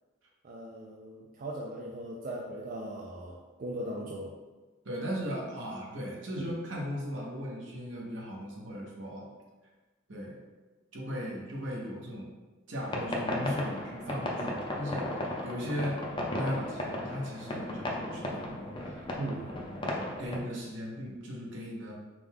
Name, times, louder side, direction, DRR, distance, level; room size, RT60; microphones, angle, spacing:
voice 1, 0.4-4.3 6.3-6.5 19.2-19.5, right 1 dB, 45° right, -2 dB, 0.4 m, -39 dB
voice 2, 4.8-9.3 10.1-10.4 10.9-12.3 12.7-16.0 16.3-19.0 19.7-21.9, equal, 75° right, -3 dB, 1.0 m, -37 dB
sound 1, 12.8-20.4, left 1 dB, 25° left, 0.5 m, -35 dB
5.1 x 2.3 x 3.5 m, 1.2 s
head